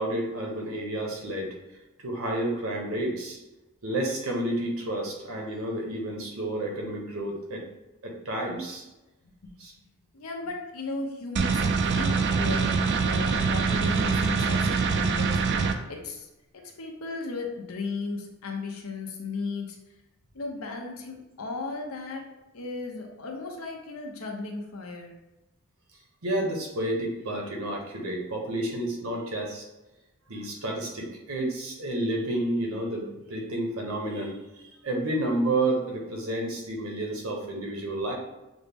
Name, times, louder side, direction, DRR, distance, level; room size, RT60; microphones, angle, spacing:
voice 1, 0.0-1.5 2.0-3.4 3.8-7.6 8.0-8.8 9.6-9.7 26.2-29.6 30.3-34.4 34.8-38.2, right 1 dB, 70° right, 0 dB, 1.0 m, -30 dB
voice 2, 10.1-19.8 20.3-22.3 22.5-25.1, left 3 dB, 75° left, 2 dB, 0.8 m, -36 dB
sound 1, 11.4-15.7, right 5 dB, 55° right, 0.4 m, -24 dB
6.2 x 2.1 x 3.4 m, 1.0 s
head